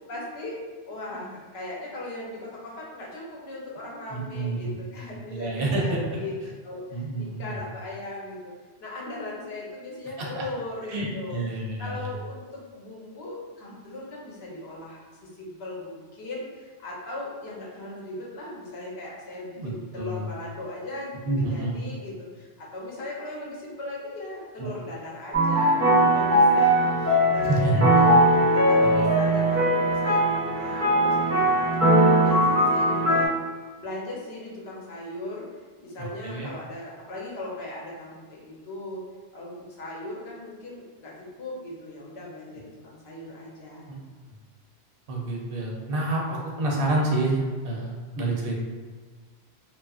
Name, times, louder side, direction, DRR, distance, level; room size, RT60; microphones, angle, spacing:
voice 1, 0.1-8.5 8.8-25.8 26.1-28.2 28.5-31.7 31.9-33.4 33.8-35.5 35.8-39.0 39.3-43.9, left 2 dB, 75° left, -4 dB, 0.9 m, -38 dB
voice 2, 4.1-4.7 5.3-6.0 6.9-7.6 10.2-10.4 10.9-12.0 19.6-20.3 21.3-21.7 24.6-24.7 27.4-28.2 28.8-29.1 36.0-36.5 43.9-44.0 45.1-48.6, right 2 dB, 65° right, -2 dB, 0.7 m, -28 dB
sound 1, 25.3-33.3, right 1 dB, 25° right, 0.3 m, -20 dB
2.9 x 2.4 x 2.3 m, 1.5 s
omnidirectional pair, 1.1 m